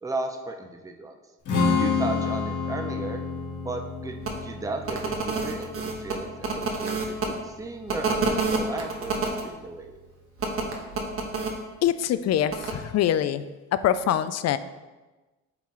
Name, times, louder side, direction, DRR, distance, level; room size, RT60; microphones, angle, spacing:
voice 1, 0.0-1.2 1.7-3.2 3.6-10.0, right 2 dB, 10° right, 4 dB, 0.6 m, -35 dB
Strum, 1.5-7.7, left 4 dB, 80° left, 1.6 m, -30 dB
sound 1, 4.2-4.3 4.8-7.3 7.9-9.4 10.4-11.5 12.5-12.7, right 4 dB, 45° right, 1.2 m, -28 dB
voice 2, 11.8-13.4 13.7-14.6, left 10 dB, 60° left, 13 dB, 0.4 m, -24 dB
8.3 x 3.7 x 3.1 m, 1.2 s
cardioid pair, 90°, 30 cm